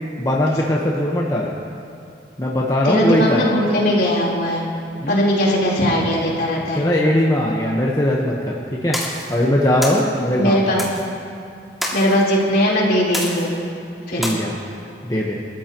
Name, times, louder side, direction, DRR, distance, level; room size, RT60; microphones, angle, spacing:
voice 1, 0.2-1.5 2.4-3.4 5.0-5.2 6.7-9.0 9.3-10.7 14.2-14.5 15.0-15.4, left 1 dB, 20° left, -3 dB, 1.2 m, -20 dB
voice 2, 2.8-4.6 5.1-6.9 10.4-10.8 11.9-13.5 14.1-14.2, equal, 60° left, -5 dB, 3.9 m, -19 dB
sound 1, 8.9-9.3 9.8-10.0 10.8-11.0 11.8-12.2 13.1-13.6 14.2-14.3, equal, ahead, 2.3 m, -27 dB
29.5 x 14.0 x 3.1 m, 2.4 s
head